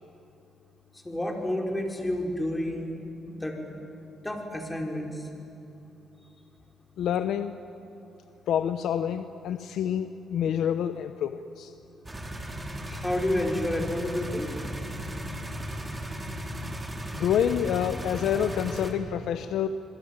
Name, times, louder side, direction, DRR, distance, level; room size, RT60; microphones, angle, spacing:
voice 1, 1.0-2.9 3.3-3.6 4.2-5.3 12.9-14.5, left 1 dB, 10° left, 2 dB, 5.0 m, -30 dB
voice 2, 7.0-7.6 8.5-11.7 17.1-19.7, left 9 dB, 75° left, 10 dB, 0.9 m, -27 dB
sound 1, 12.1-18.9, equal, 15° right, 3.7 m, -36 dB
27.5 x 21.5 x 9.7 m, 2.9 s
cardioid pair, 90°, 0 cm